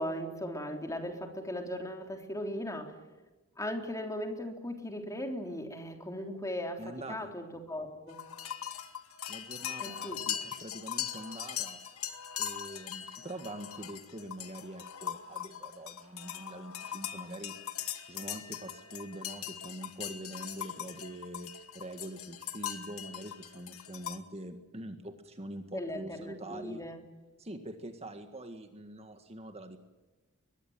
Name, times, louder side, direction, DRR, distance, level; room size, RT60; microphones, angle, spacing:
voice 1, 0.0-3.0 3.6-8.2 9.8-10.2 25.7-27.0, equal, 15° left, 4 dB, 3.5 m, -38 dB
voice 2, 6.8-7.3 9.3-12.1 12.4-17.5 18.0-26.8 27.4-29.8, right 1 dB, 30° right, 7 dB, 1.8 m, -44 dB
sound 1, 8.1-24.2, left 10 dB, 70° left, 2.1 m, -40 dB
23.5 x 20.5 x 9.3 m, 1.2 s
head